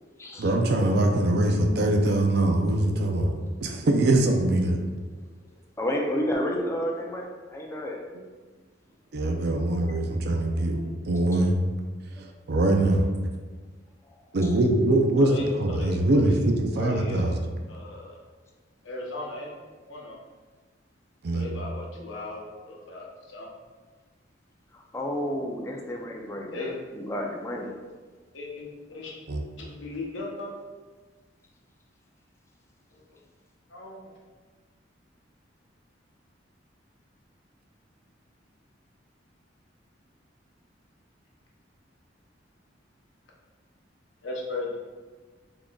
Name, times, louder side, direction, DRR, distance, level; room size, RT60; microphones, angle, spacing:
voice 1, 0.4-3.3 3.6-4.8 9.1-10.8 11.1-11.6 12.2-13.1 14.3-15.3 15.6-17.4 21.2-21.5 29.3-29.4, right 1 dB, 60° right, 3 dB, 0.5 m, -23 dB
voice 2, 5.8-8.0 9.4-9.5 24.7-27.7, equal, 15° left, 0 dB, 0.4 m, -31 dB
voice 3, 15.2-16.4 16.7-17.3 17.7-18.2 18.8-19.6 19.9-20.2 21.3-23.5 26.5-26.8 27.6-27.8 28.3-29.1 29.6-30.5 32.9-33.0 33.7-34.0 44.2-44.8, left 3 dB, 80° left, -2 dB, 0.8 m, -36 dB
3.7 x 3.6 x 2.3 m, 1.4 s
head